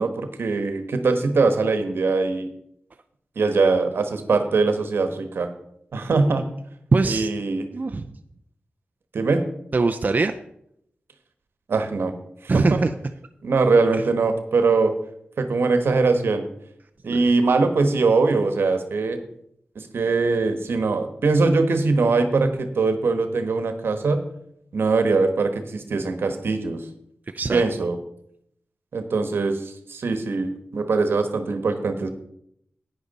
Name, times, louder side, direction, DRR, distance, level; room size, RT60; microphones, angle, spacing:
voice 1, 0.0-2.5 3.4-5.5 5.9-6.4 7.0-7.7 9.1-9.4 11.7-12.1 12.4-12.8 13.4-14.9 15.4-16.4 17.0-19.2 19.7-24.2 24.7-26.8 27.5-28.0 28.9-32.1, right 3 dB, 80° right, 8 dB, 1.2 m, -22 dB
voice 2, 6.9-7.3 7.7-8.1 9.7-10.3 12.5-12.9 13.9-14.0 17.1-17.3 27.3-27.6, right 3 dB, 45° right, 6 dB, 0.6 m, -22 dB
10.0 x 9.7 x 4.1 m, 0.73 s
cardioid pair, 60°, 4 cm